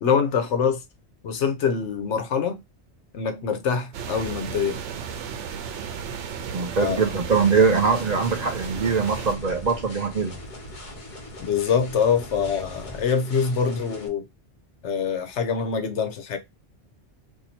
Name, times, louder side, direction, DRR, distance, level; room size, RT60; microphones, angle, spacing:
voice 1, 0.0-0.8 1.2-2.6 3.1-4.8 6.8-7.2 11.4-14.3 14.8-16.4, left 6 dB, 80° left, 1.0 m, -24 dB
sound 1, 3.9-9.4, right 7 dB, 85° right, 0.9 m, -34 dB
sound 2, 6.3-13.0, right 2 dB, 35° right, 1.0 m, -44 dB
voice 2, 6.5-10.3, right 5 dB, 50° right, 0.5 m, -22 dB
sound 3, 7.3-14.1, left 2 dB, 45° left, 1.1 m, -42 dB
2.7 x 2.6 x 4.2 m
omnidirectional pair, 1.2 m